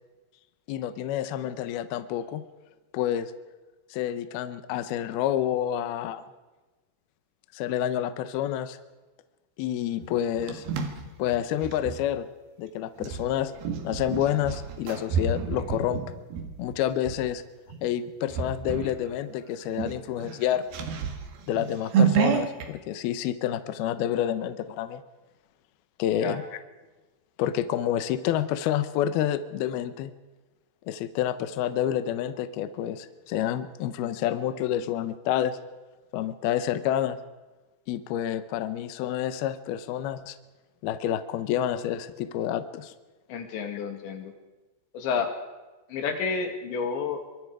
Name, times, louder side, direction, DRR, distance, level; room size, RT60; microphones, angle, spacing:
voice 1, 0.7-2.4 2.9-3.3 3.9-6.2 7.5-8.8 9.6-10.6 11.2-12.3 12.6-13.5 13.8-16.0 16.6-17.4 17.8-20.6 21.5-25.0 26.0-26.6 27.4-30.1 30.9-35.6 36.1-37.2 37.9-40.4 40.8-42.9, left 11 dB, 85° left, 11 dB, 2.2 m, -28 dB
sound 1, 10.0-12.0 13.0-17.2 17.7-17.9 18.3-19.0 19.3-19.4 19.7-22.7, right 6 dB, 60° right, 3.1 m, -29 dB
voice 2, 43.3-44.3 44.9-45.3 45.9-47.2, left 5 dB, 65° left, 5 dB, 4.3 m, -30 dB
25.5 x 24.0 x 4.9 m, 1.2 s
omnidirectional pair, 5.9 m